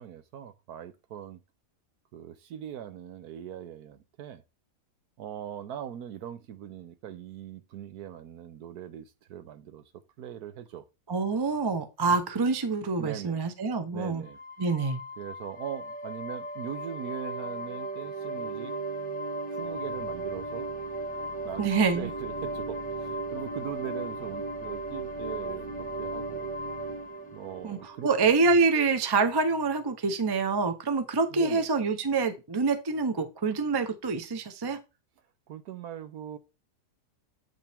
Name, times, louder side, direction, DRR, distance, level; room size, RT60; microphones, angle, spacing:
voice 1, 0.0-1.4 2.1-4.4 5.2-9.8 10.2-10.8 13.0-13.4 13.9-14.4 15.2-18.8 19.5-20.7 21.4-21.6 21.9-26.5 27.3-28.3 31.3-31.7 35.5-36.4, right 9 dB, 70° right, 1.3 m, -41 dB
voice 2, 11.1-14.2 14.6-15.0 21.6-22.1 27.6-34.8, right 4 dB, 30° right, 0.4 m, -26 dB
sound 1, 14.2-28.7, right 2 dB, 5° left, 1.2 m, -36 dB
8.2 x 5.3 x 3.5 m
omnidirectional pair, 1.7 m